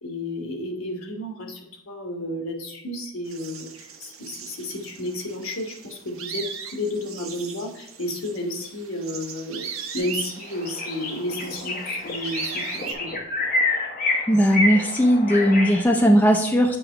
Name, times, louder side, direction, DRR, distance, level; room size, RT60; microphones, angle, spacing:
voice 1, 0.0-9.7 9.9-13.1, left 1 dB, 75° left, 2 dB, 1.3 m, -32 dB
sound 1, 3.3-12.9, right 6 dB, 75° right, 0.7 m, -38 dB
sound 2, 10.0-10.1 10.4-15.8, left 2 dB, 40° left, 1.0 m, -28 dB
voice 2, 14.3-16.8, equal, 10° left, 2 dB, 0.4 m, -18 dB
7.7 x 3.0 x 4.9 m, 0.87 s
head